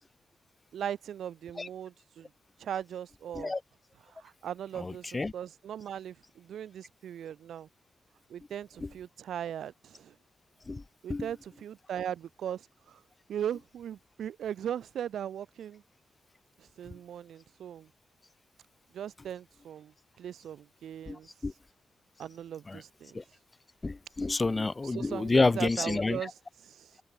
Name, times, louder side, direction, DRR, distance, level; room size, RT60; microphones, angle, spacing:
voice 1, 0.7-2.3 2.6-3.5 4.1-7.7 8.3-10.2 11.0-13.0 13.3-15.8 16.6-17.9 18.9-21.3 22.2-23.2 24.8-26.3 26.6-27.0, right 9 dB, 85° right, 3.8 m, -39 dB
voice 2, 4.8-5.3 10.7-10.8 11.1-11.3 21.1-21.5 22.7-22.8 23.1-23.2 23.8-26.3, left 3 dB, 20° left, 1.0 m, -29 dB
wide cardioid pair, 175°, 0 cm